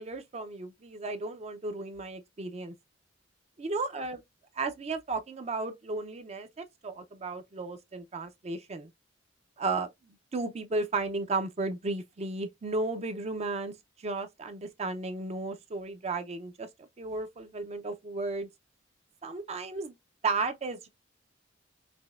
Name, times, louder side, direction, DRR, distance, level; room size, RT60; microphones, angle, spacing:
voice 1, 0.0-2.7 3.6-4.2 4.5-8.9 9.6-13.7 14.0-16.7 17.0-18.5 19.2-20.0 20.2-20.9, right 3 dB, 35° right, 0.5 m, -34 dB
5.1 x 2.1 x 2.3 m
head